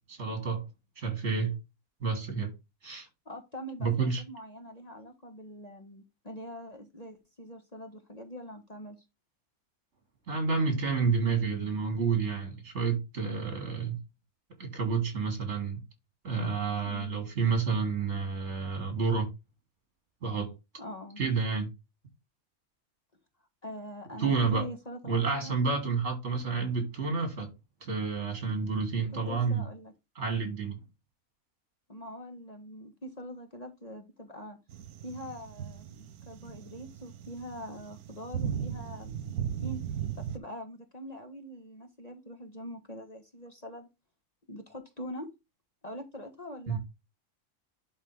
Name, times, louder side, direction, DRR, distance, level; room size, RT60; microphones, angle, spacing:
voice 1, 0.1-0.6 1.0-1.5 2.0-2.5 2.8-3.1 3.8-4.2 10.3-14.0 14.6-15.8 16.2-19.3 20.2-20.5 21.2-21.7 24.2-24.6 25.0-27.5 27.8-29.6 30.1-30.8 46.7-46.8, right 5 dB, 50° right, 3.4 m, -29 dB
voice 2, 3.2-9.0 16.8-17.2 20.8-21.2 23.6-25.6 29.3-29.9 31.9-34.6 35.0-39.8 40.2-43.9 44.5-45.3 45.8-46.8, equal, 30° left, 1.2 m, -43 dB
sound 1, 34.7-40.4, right 8 dB, 80° right, 1.3 m, -37 dB
11.0 x 3.8 x 3.4 m
omnidirectional pair, 1.6 m